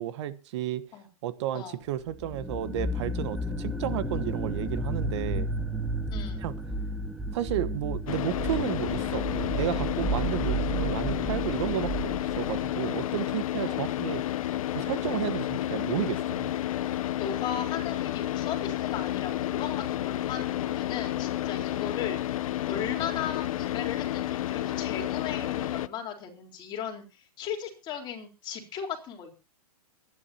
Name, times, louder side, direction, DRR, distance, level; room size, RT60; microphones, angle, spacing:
voice 1, 0.0-0.8 1.2-5.5 6.4-6.5 7.3-14.2 14.7-16.5, right 12 dB, 50° right, 1.2 m, -32 dB
sound 1, 2.1-12.7, right 2 dB, ahead, 1.1 m, -32 dB
voice 2, 6.1-6.5 13.6-13.9 17.2-22.2 22.7-29.3, left 8 dB, 25° left, 3.9 m, -37 dB
Car / Idling, 8.1-25.9, left 13 dB, 65° left, 0.7 m, -31 dB
23.5 x 11.0 x 2.8 m
hypercardioid pair, 150°, 19 cm